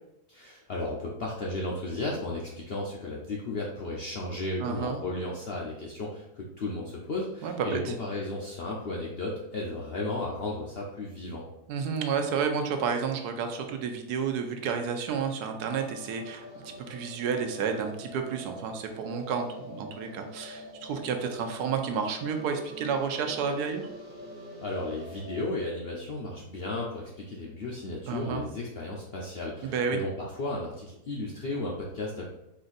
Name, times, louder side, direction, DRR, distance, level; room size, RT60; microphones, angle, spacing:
voice 1, 0.3-11.5 24.6-32.2, left 2 dB, 65° left, -3 dB, 0.6 m, -34 dB
voice 2, 4.6-5.0 7.4-7.9 11.7-23.9 28.1-28.5 29.6-30.0, right 6 dB, 80° right, 5 dB, 1.2 m, -31 dB
sound 1, 15.6-25.5, left 1 dB, 35° right, 0.8 m, -45 dB
4.3 x 2.6 x 3.9 m, 0.88 s
omnidirectional pair, 1.7 m